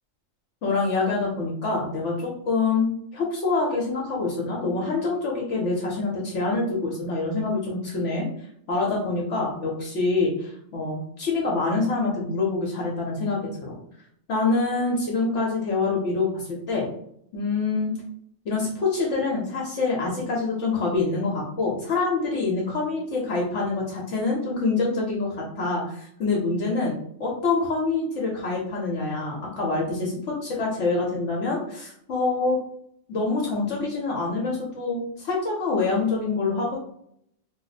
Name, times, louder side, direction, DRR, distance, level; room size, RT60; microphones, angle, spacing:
voice 1, 0.6-8.3 8.7-13.8 14.3-16.9 17.3-17.9 18.5-26.9 27.2-32.6 33.1-36.8, left 3 dB, 65° left, -2 dB, 1.0 m, -26 dB
2.7 x 2.0 x 3.9 m, 0.70 s
omnidirectional pair, 1.4 m